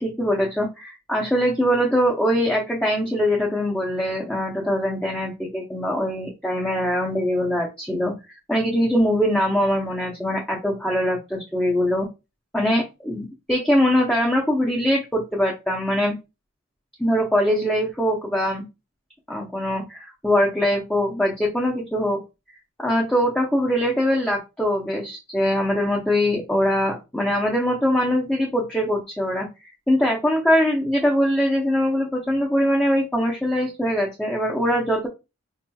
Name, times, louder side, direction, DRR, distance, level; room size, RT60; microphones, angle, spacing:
voice 1, 0.0-8.1 8.5-12.1 12.5-16.1 17.0-18.6 19.3-22.2 22.8-35.1, equal, 5° left, -2 dB, 0.6 m, -22 dB
4.7 x 2.8 x 2.3 m, 0.26 s
head